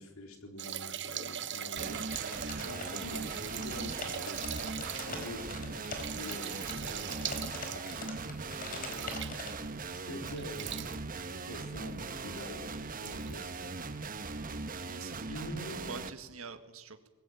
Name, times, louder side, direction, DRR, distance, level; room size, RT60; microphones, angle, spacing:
voice 1, 0.0-2.1 2.6-4.0 4.5-7.7 8.6-9.1 9.9-13.7 15.3-16.0, left 1 dB, 85° left, 5 dB, 4.2 m, -46 dB
sound 1, 0.6-9.7 10.3-11.0 11.9-12.0 12.3-12.4 13.0-13.4 14.4-14.5, right 10 dB, 60° right, 1.1 m, -41 dB
sound 2, 1.8-16.1, right 3 dB, 40° right, 1.3 m, -40 dB
sound 3, 2.0-3.2 3.4-9.5, left 3 dB, 45° left, 4.8 m, -43 dB
voice 2, 2.5-2.8 8.0-8.3 14.7-15.5 15.9-17.1, right 4 dB, 75° right, 7 dB, 1.9 m, -47 dB
21.5 x 21.0 x 9.2 m, 1.2 s
head